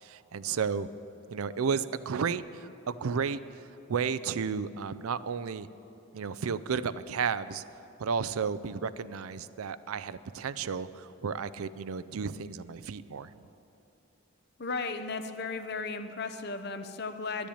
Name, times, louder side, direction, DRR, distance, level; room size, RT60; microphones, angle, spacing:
voice 1, 0.0-0.9 1.3-3.4 3.9-5.7 6.1-7.6 8.0-13.3, right 6 dB, 80° right, 15 dB, 0.5 m, -32 dB
voice 2, 14.6-17.5, left 4 dB, 50° left, 9 dB, 0.7 m, -35 dB
11.5 x 10.0 x 8.6 m, 2.9 s
head